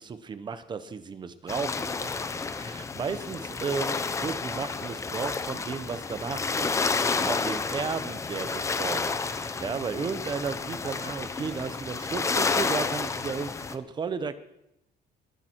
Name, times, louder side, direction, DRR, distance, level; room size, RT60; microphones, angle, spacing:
voice 1, 0.0-14.3, right 5 dB, 25° right, 12 dB, 0.8 m, -34 dB
sound 1, 1.5-13.7, left 4 dB, 15° left, 0.6 m, -30 dB
20.5 x 10.5 x 4.5 m, 0.85 s
cardioid pair, 175°, 18 cm